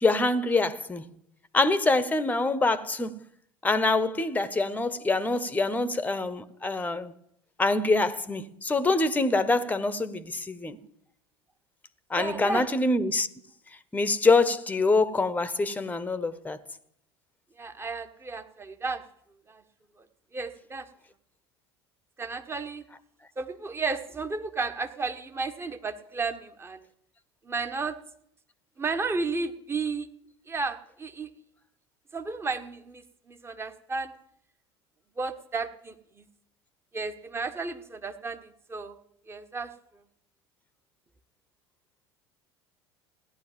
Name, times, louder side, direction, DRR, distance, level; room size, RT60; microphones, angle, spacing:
voice 1, 0.0-1.1 1.5-3.2 3.6-7.1 7.6-10.8 12.1-13.3 13.9-16.6, left 3 dB, 10° left, 1.0 m, -25 dB
voice 2, 12.1-12.7 17.6-19.0 19.5-19.6 20.3-20.9 22.2-22.8 23.4-26.8 27.4-28.0 28.8-30.1 30.5-31.3 32.1-34.1 35.2-36.3 36.9-39.0 39.3-39.7, right 4 dB, 15° right, 1.4 m, -33 dB
16.0 x 11.0 x 7.5 m
figure-of-eight pair, 70°, 14 cm